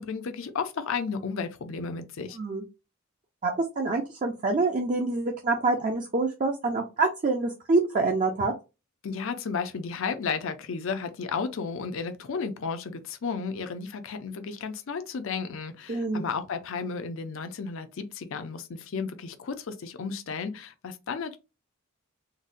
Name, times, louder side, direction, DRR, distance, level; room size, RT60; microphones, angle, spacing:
voice 1, 0.0-2.4 9.0-21.4, left 5 dB, 65° left, 0.5 m, -33 dB
voice 2, 3.4-8.5 15.9-16.2, right 3 dB, 35° right, 0.4 m, -26 dB
3.9 x 2.1 x 2.5 m
head